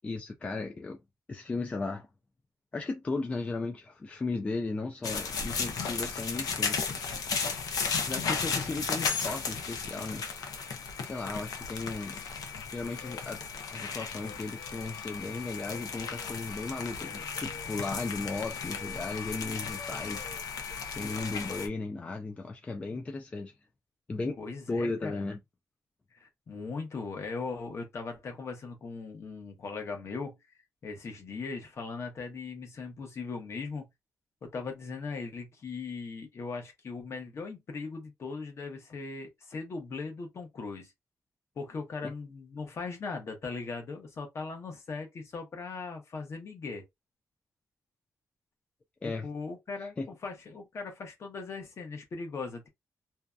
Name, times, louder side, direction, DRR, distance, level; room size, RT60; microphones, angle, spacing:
voice 1, 0.0-1.0 1.3-2.1 2.7-7.0 8.0-10.5 11.0-12.2 12.7-13.4 13.7-20.5 20.9-23.5 24.1-24.4 24.7-25.4 42.0-42.1 49.0-49.3 49.8-50.1, left 3 dB, 20° left, 0.3 m, -36 dB
sound 1, 5.0-21.7, left 5 dB, 80° left, 0.5 m, -35 dB
voice 2, 24.4-25.2 26.1-30.4 30.8-33.9 34.4-40.9 41.6-46.8 49.0-52.7, left 4 dB, 45° left, 0.8 m, -39 dB
2.6 x 2.2 x 2.3 m
wide cardioid pair, 170°, 6 cm